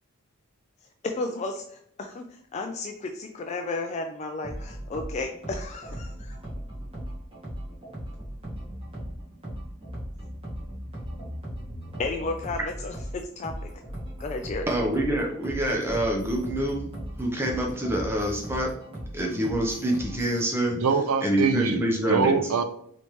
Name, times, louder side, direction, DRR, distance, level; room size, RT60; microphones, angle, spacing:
voice 1, 1.0-6.4 12.0-13.7 14.2-14.7, left 3 dB, 30° left, 4 dB, 0.3 m, -33 dB
sound 1, 4.4-20.4, equal, 25° right, 1.4 m, -38 dB
voice 2, 14.7-16.9 17.2-18.7 19.1-20.8 21.2-22.4, right 1 dB, 10° right, 0 dB, 0.7 m, -26 dB
voice 3, 20.8-21.8 22.1-22.6, right 5 dB, 85° right, 9 dB, 0.4 m, -23 dB
4.1 x 3.3 x 3.1 m, 0.68 s
head